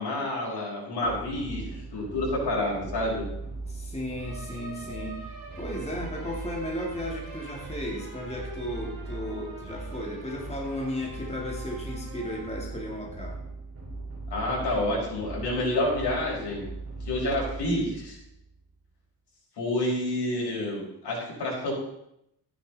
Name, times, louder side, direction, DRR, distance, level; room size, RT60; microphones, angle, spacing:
voice 1, 0.0-3.3 14.3-16.7 17.0-18.2 19.6-21.7, left 1 dB, 85° left, -4 dB, 5.6 m, -29 dB
sound 1, 1.0-18.6, right 2 dB, 35° right, 4.3 m, -39 dB
voice 2, 3.6-5.2 5.6-13.4, left 1 dB, 15° left, -2 dB, 2.3 m, -35 dB
13.5 x 9.9 x 4.1 m, 0.80 s
wide cardioid pair, 150°, 40 cm